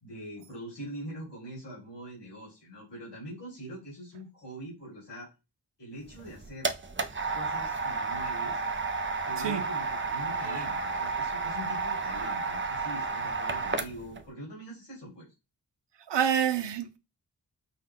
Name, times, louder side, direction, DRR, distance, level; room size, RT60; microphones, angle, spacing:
voice 1, 0.0-5.3 5.8-6.7 7.3-8.6 9.2-15.3, right 1 dB, 90° left, 2.5 m, -43 dB
sound 1, 6.1-14.2, right 4 dB, 30° right, 0.5 m, -32 dB
voice 2, 16.1-17.0, right 8 dB, 90° right, 0.6 m, -28 dB
5.5 x 2.2 x 3.7 m
wide cardioid pair, 80°, 41 cm